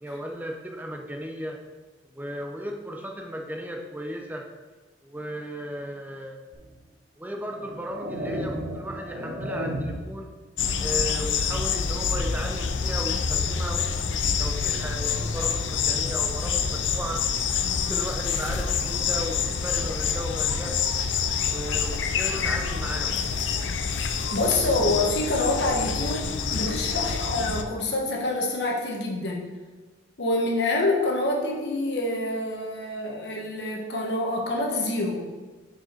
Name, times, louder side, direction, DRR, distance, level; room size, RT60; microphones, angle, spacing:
voice 1, 0.0-1.6 2.1-4.5 5.0-6.4 7.2-10.3 10.8-17.2 17.7-20.8 21.4-23.2, equal, 10° right, 1 dB, 0.5 m, -35 dB
sound 1, 6.5-6.7 7.4-10.2, equal, 45° right, 1.2 m, -33 dB
sound 2, 10.6-27.6, left 6 dB, 85° left, 0.5 m, -27 dB
voice 2, 24.3-29.4 30.2-35.2, left 2 dB, 65° left, -1 dB, 1.2 m, -26 dB
6.3 x 4.9 x 4.4 m, 1.3 s
head